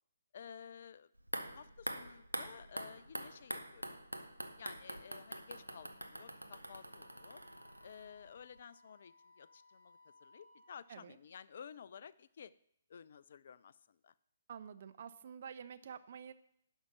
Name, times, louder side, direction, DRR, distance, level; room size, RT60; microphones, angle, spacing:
voice 1, 0.3-1.1 1.5-3.8 4.6-7.4 7.8-12.5 12.9-14.1, left 7 dB, 50° left, 17 dB, 0.4 m, -53 dB
sound 1, 1.2-8.3 8.6-8.7, right 1 dB, 90° right, 0.8 m, -45 dB
Wind instrument woodwind instrument, 6.8-11.0, left 2 dB, 20° left, 2.1 m, -64 dB
voice 2, 14.5-16.3, right 7 dB, 45° right, 11 dB, 0.6 m, -49 dB
11.0 x 5.5 x 6.3 m, 0.71 s
figure-of-eight pair, 130°, 0 cm